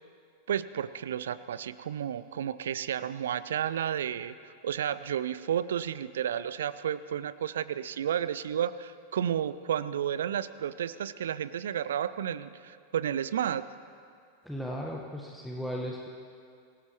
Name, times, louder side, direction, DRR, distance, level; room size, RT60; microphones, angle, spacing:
voice 1, 0.5-13.6, right 9 dB, 60° right, 16 dB, 0.5 m, -32 dB
voice 2, 14.4-16.1, equal, ahead, -3 dB, 1.4 m, -36 dB
25.5 x 18.0 x 3.1 m, 2.3 s
figure-of-eight pair, 90°, 0 cm